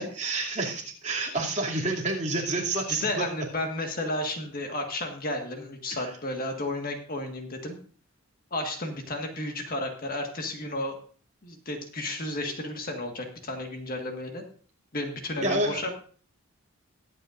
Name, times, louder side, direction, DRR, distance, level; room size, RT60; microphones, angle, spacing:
voice 1, 0.0-3.3 15.4-15.8, right 2 dB, 30° right, -2 dB, 2.6 m, -29 dB
voice 2, 2.9-7.8 8.5-11.0 11.4-14.4 14.9-15.9, left 1 dB, 40° left, 3 dB, 1.6 m, -32 dB
21.5 x 8.5 x 2.6 m, 0.42 s
head